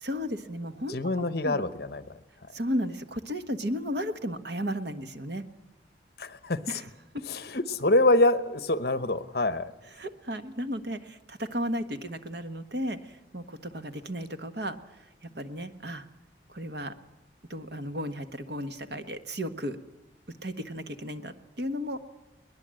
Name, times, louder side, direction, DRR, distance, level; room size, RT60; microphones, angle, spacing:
voice 1, 0.0-1.0 1.4-1.6 2.5-5.4 6.7-6.9 7.1-7.2 10.0-14.8 15.2-16.0 16.5-16.9 17.5-19.8 20.4-22.1, equal, 60° right, 8 dB, 1.4 m, -34 dB
voice 2, 0.9-2.1 6.2-6.8 7.3-9.7, left 2 dB, 55° left, 12 dB, 1.0 m, -25 dB
22.0 x 20.0 x 7.7 m, 0.96 s
head